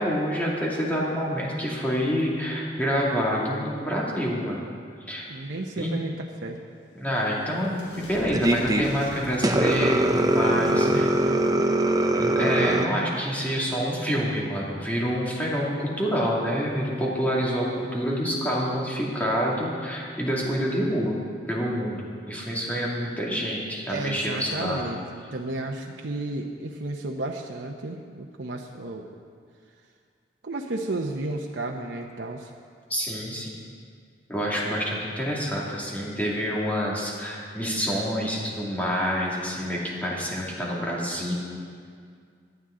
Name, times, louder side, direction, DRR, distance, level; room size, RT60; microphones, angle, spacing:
voice 1, 0.0-4.6 5.0-5.3 5.7-5.9 7.0-11.1 12.1-21.2 21.5-24.8 32.9-33.5 34.3-41.3, equal, 10° left, -5 dB, 2.3 m, -27 dB
voice 2, 5.3-6.6 10.7-11.6 23.9-29.1 30.4-32.5, right 2 dB, 85° right, 0 dB, 0.8 m, -33 dB
sound 1, 6.6-13.1, equal, 80° left, 3.1 m, -45 dB
sound 2, 8.3-8.8 9.4-12.9, right 1 dB, 20° right, 0.7 m, -22 dB
18.0 x 11.0 x 3.8 m, 2.1 s
head